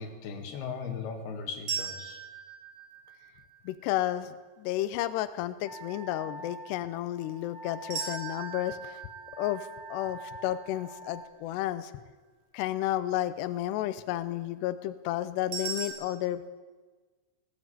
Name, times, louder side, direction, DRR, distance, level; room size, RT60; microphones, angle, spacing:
voice 1, 0.0-2.2, left 5 dB, 55° left, 4 dB, 3.9 m, -38 dB
sound 1, 1.7-3.8 7.9-11.0 15.5-15.9, right 6 dB, 40° right, 8.4 m, -39 dB
voice 2, 3.7-9.0 9.4-11.9 12.5-16.5, left 13 dB, 85° left, 12 dB, 2.4 m, -32 dB
Wind instrument woodwind instrument, 5.6-11.3, right 2 dB, 25° left, 1.3 m, -45 dB
19.0 x 18.0 x 9.0 m, 1.3 s
omnidirectional pair, 5.9 m